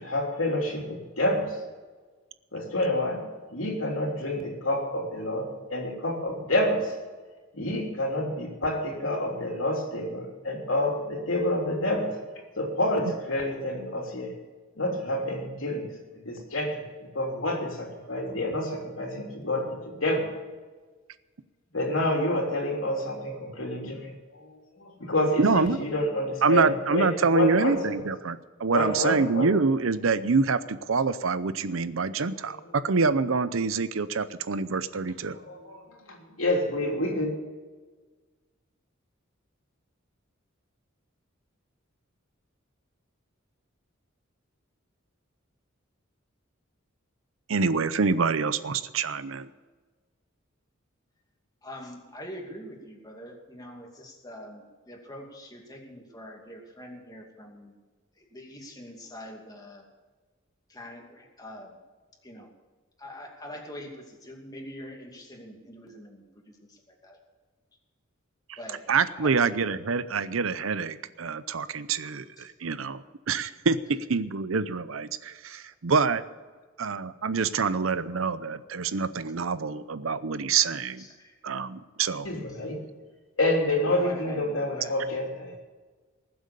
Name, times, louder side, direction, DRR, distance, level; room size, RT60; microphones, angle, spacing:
voice 1, 0.0-1.6 2.5-6.9 7.5-12.2 12.6-14.3 14.7-16.0 16.2-16.9 17.1-20.3 21.7-27.9 28.7-29.5 32.6-32.7 35.3-37.3 82.2-82.8 83.4-85.5, left 1 dB, 70° left, 0 dB, 3.3 m, -28 dB
voice 2, 25.4-25.8 26.4-35.4 47.5-49.5 68.5-68.6 68.9-76.2 76.8-81.0 81.4-82.3, right 4 dB, 75° right, 14 dB, 0.7 m, -26 dB
voice 3, 51.6-57.8 58.2-59.9 60.7-61.8 62.2-62.5 63.0-66.2 66.7-66.8 67.0-67.2 68.6-68.9 69.2-69.4 72.0-72.1 72.4-72.5 75.5-75.6 81.0-81.3 83.9-85.0, left 1 dB, 20° left, 0 dB, 2.5 m, -44 dB
19.5 x 7.9 x 6.9 m, 1.4 s
head